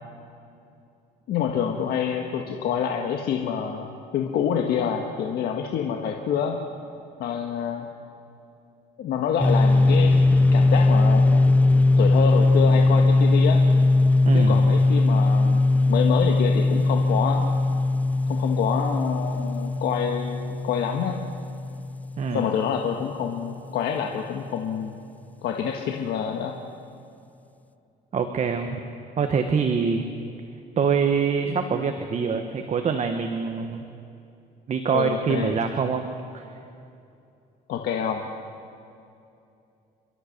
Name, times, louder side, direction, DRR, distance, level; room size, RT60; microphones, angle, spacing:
voice 1, 1.3-6.6 7.2-7.9 9.0-11.4 12.0-13.6 14.3-17.5 18.3-21.2 22.3-24.9 25.4-26.5 34.9-35.5 37.7-38.3, left 8 dB, 70° left, 2 dB, 1.6 m, -27 dB
sound 1, 9.4-22.9, left 2 dB, 10° left, 0.6 m, -20 dB
voice 2, 14.2-14.6 22.2-22.5 28.1-28.8 29.2-30.1 30.8-33.8 34.7-36.1 36.3-36.4, right 6 dB, 40° right, 6 dB, 1.3 m, -25 dB
29.5 x 13.0 x 6.7 m, 2.6 s
cardioid pair, 110°, 17 cm